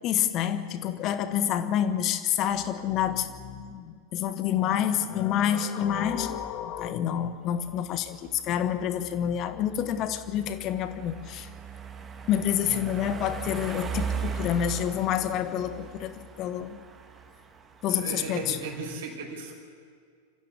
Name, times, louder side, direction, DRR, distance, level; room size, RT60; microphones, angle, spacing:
voice 1, 0.0-11.5 12.3-16.8 17.8-18.6, left 10 dB, 35° left, 10 dB, 1.5 m, -28 dB
sound 1, 7.2-19.0, right 6 dB, 20° right, 1.9 m, -39 dB
voice 2, 17.9-19.5, right 4 dB, 60° right, 0 dB, 5.7 m, -36 dB
27.5 x 14.5 x 8.5 m, 2.1 s
figure-of-eight pair, 90°, 0 cm